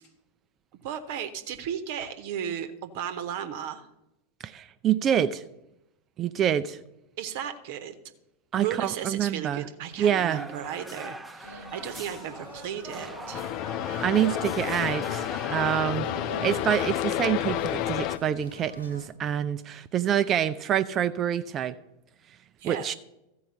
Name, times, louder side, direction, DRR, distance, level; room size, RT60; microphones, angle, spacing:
voice 1, 0.8-3.9 7.2-8.0 8.5-13.4 22.6-22.9, right 9 dB, 50° right, 9 dB, 0.9 m, -35 dB
voice 2, 4.4-5.4 6.2-6.8 8.5-9.7 10.0-10.4 14.0-15.2 15.5-21.7 22.6-22.9, right 9 dB, 30° right, 12 dB, 0.4 m, -26 dB
sound 1, 10.3-16.9, right 1 dB, 5° right, 0.7 m, -42 dB
sound 2, 11.4-19.1, left 1 dB, 80° left, 1.1 m, -44 dB
sound 3, 13.3-18.2, left 13 dB, 40° left, 0.3 m, -30 dB
14.0 x 4.7 x 6.7 m, 0.89 s
figure-of-eight pair, 90°, 0 cm